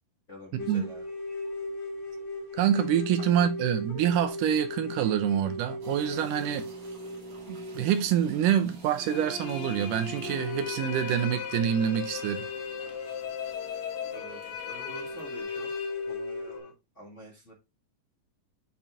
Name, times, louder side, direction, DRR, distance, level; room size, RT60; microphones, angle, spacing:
voice 1, 0.3-1.0 14.1-15.7 16.1-17.5, equal, 30° left, 1.7 m, -47 dB
sound 1, 0.6-9.2 9.6-9.7 10.2-16.6, left 3 dB, 90° left, 0.5 m, -38 dB
voice 2, 2.5-6.7 7.5-12.4, right 9 dB, 80° right, 2.3 m, -26 dB
sound 2, 5.8-15.4, right 3 dB, 50° right, 2.6 m, -51 dB
sound 3, 9.0-16.7, left 7 dB, 75° left, 1.5 m, -39 dB
7.1 x 4.3 x 3.7 m
omnidirectional pair, 3.8 m